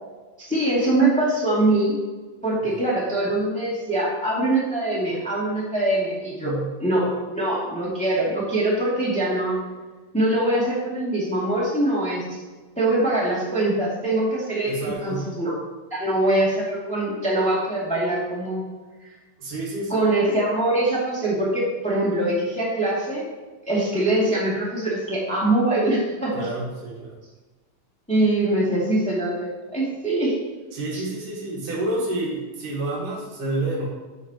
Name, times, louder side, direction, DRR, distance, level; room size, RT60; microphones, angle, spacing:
voice 1, 0.4-2.0 2.4-9.6 10.1-12.2 12.8-15.5 15.9-18.6 19.9-23.2 23.6-26.5 28.1-30.3, right 1 dB, 5° left, -7 dB, 1.9 m, -23 dB
voice 2, 6.4-6.8 14.6-15.3 19.4-20.1 26.3-27.2 30.7-33.9, right 2 dB, 90° right, -4 dB, 3.7 m, -29 dB
12.5 x 6.4 x 3.0 m, 1.3 s
omnidirectional pair, 3.6 m